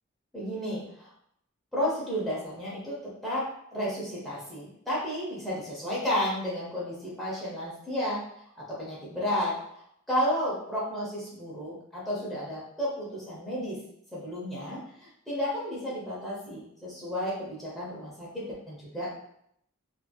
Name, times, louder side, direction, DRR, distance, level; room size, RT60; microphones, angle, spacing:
voice 1, 0.3-1.1 1.7-8.2 8.5-13.8 14.1-19.1, equal, ahead, -8 dB, 0.8 m, -32 dB
3.0 x 2.6 x 2.3 m, 0.72 s
head